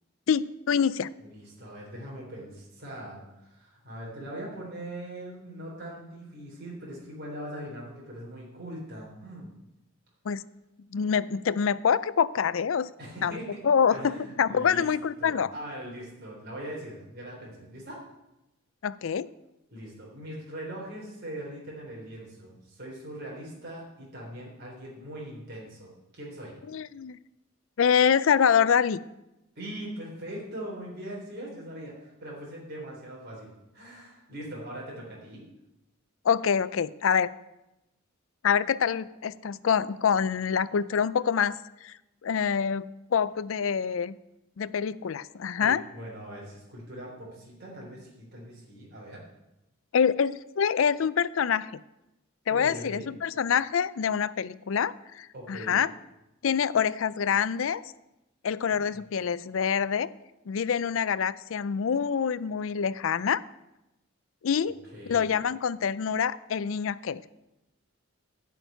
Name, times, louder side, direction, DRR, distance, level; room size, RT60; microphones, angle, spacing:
voice 1, 0.3-1.1 10.3-10.4 10.9-12.9 13.2-15.5 18.8-19.3 26.7-27.2 27.8-29.0 36.2-37.3 38.4-41.9 42.2-44.2 44.6-45.8 49.9-51.7 52.5-55.9 56.4-57.8 58.4-60.1 60.5-63.4 64.4-64.8 65.1-67.2, left 7 dB, 70° left, 17 dB, 0.4 m, -26 dB
voice 2, 1.2-9.5 13.0-13.6 13.9-14.9 15.2-18.0 19.7-26.5 29.6-35.4 45.6-49.2 52.5-53.1 55.3-55.8 64.7-65.2, right 1 dB, 50° right, -4 dB, 3.5 m, -41 dB
11.5 x 6.0 x 9.1 m, 0.92 s
head